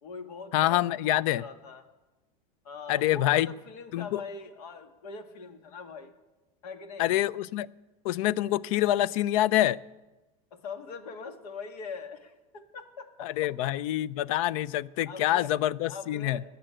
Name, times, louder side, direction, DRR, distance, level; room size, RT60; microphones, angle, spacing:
voice 1, 0.0-1.8 2.6-6.1 6.6-7.1 10.5-13.3 13.6-13.7 15.1-15.5 15.9-16.4, left 5 dB, 85° left, 8 dB, 1.8 m, -42 dB
voice 2, 0.5-1.4 2.9-3.5 3.9-4.2 7.0-7.7 8.0-9.8 13.2-16.4, left 14 dB, 65° left, 22 dB, 0.5 m, -26 dB
20.0 x 6.8 x 9.0 m, 1.1 s
supercardioid pair, 150°, 19 cm